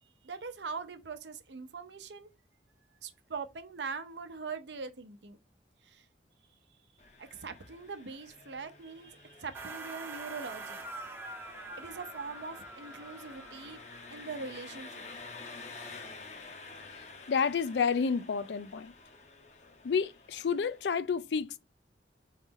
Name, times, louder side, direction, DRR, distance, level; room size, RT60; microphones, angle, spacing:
voice 1, 0.0-2.3 3.0-5.4 5.8-6.0 7.2-10.8 11.8-13.8 14.1-15.1, right 4 dB, 80° right, 0.7 m, -42 dB
Engine, 7.0-21.0, left 3 dB, 40° left, 0.7 m, -50 dB
sound 1, 9.5-14.1, right 3 dB, 15° right, 0.6 m, -44 dB
voice 2, 17.0-18.9 19.8-21.6, left 6 dB, 75° left, 0.4 m, -30 dB
4.1 x 3.2 x 3.6 m
head